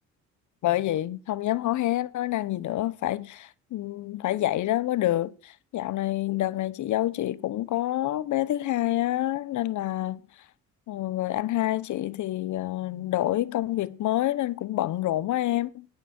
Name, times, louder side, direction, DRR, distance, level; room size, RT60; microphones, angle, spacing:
voice 1, 0.6-10.2 10.9-15.9, left 14 dB, 75° left, 1.0 m, -27 dB
14.0 x 10.5 x 4.4 m
cardioid pair, 90°, 30 cm